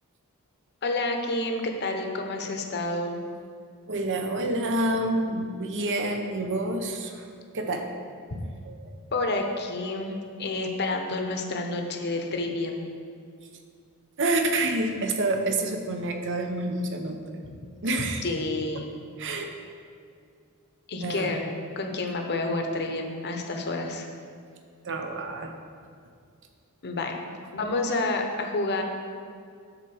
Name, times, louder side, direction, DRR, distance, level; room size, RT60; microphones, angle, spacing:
voice 1, 0.8-3.2 9.1-12.8 18.2-18.9 20.9-21.5 21.8-24.1 26.8-28.8, left 2 dB, 50° left, 3 dB, 1.0 m, -29 dB
voice 2, 3.9-7.2 7.5-7.9 8.6-8.9 14.2-17.2 17.8-18.2 18.7-18.8 19.2-19.4 21.0-21.4 24.8-25.5, right 2 dB, 55° right, 4 dB, 0.9 m, -28 dB
9.7 x 4.4 x 7.1 m, 2.2 s
head